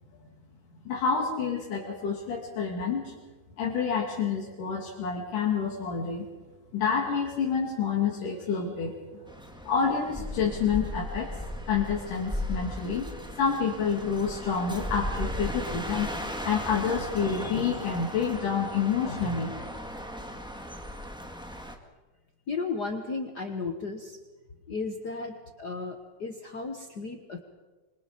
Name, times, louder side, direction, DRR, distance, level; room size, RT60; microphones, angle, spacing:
voice 1, 0.9-3.1 3.6-6.2 6.7-8.9 9.7-11.4 11.7-13.1 13.4-19.5, left 6 dB, 80° left, -3 dB, 4.3 m, -28 dB
sound 1, 9.3-21.7, equal, ahead, 1.2 m, -37 dB
voice 2, 22.5-24.2 24.7-27.4, left 4 dB, 50° left, 5 dB, 1.2 m, -34 dB
25.5 x 25.0 x 5.2 m, 1.2 s
omnidirectional pair, 3.6 m